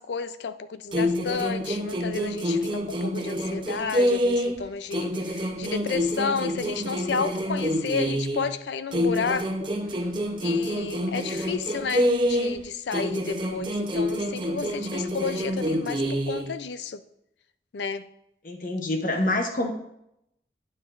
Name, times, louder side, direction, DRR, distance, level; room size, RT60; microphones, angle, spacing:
voice 1, 0.0-9.7 10.4-17.0 17.7-18.1, left 5 dB, 80° left, 12 dB, 0.4 m, -32 dB
sound 1, 0.9-4.6 4.9-8.5 8.9-12.6 12.9-16.5, equal, 25° right, 0.7 m, -27 dB
voice 2, 18.4-19.7, left 1 dB, 50° left, 4 dB, 0.9 m, -26 dB
9.6 x 7.1 x 2.5 m, 0.79 s
head